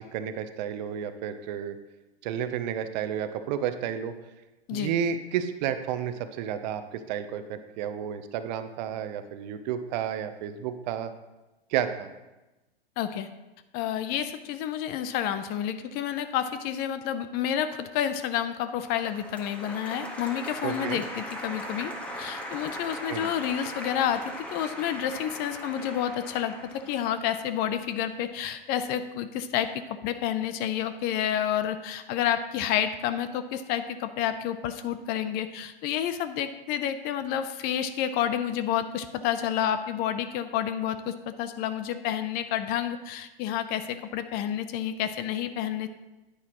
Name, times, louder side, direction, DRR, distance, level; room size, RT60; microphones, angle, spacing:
voice 1, 0.0-1.8 2.2-4.1 4.7-11.1 11.7-12.1 20.6-21.0 23.1-23.3, right 9 dB, 45° right, 10 dB, 0.8 m, -31 dB
voice 2, 13.0-13.3 13.7-45.9, left 10 dB, 30° left, 11 dB, 0.6 m, -29 dB
Applause, 18.9-27.9, equal, 5° left, 1.5 m, -39 dB
9.8 x 9.8 x 3.0 m, 1.0 s
hypercardioid pair, 110°, 31 cm